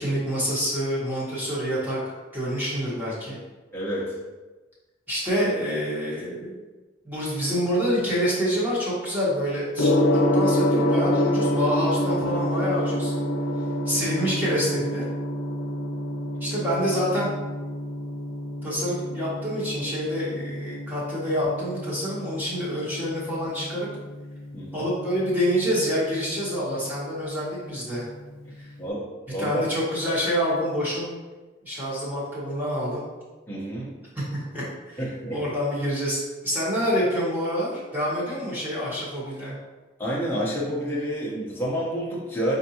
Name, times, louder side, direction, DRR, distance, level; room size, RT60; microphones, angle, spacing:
voice 1, 0.0-3.4 5.1-6.6 7.0-13.1 13.8-15.1 16.4-17.3 18.6-23.9 24.7-28.0 29.4-31.1 31.6-33.1 34.3-35.0 35.3-39.5, equal, 10° right, -8 dB, 1.3 m, -27 dB
voice 2, 3.7-4.2 24.5-24.9 28.8-29.6 33.5-33.9 35.0-35.4 40.0-42.5, equal, 10° left, -6 dB, 0.9 m, -29 dB
Gong, 9.7-28.8, equal, 80° left, 0.6 m, -28 dB
5.8 x 2.6 x 2.9 m, 1.2 s
head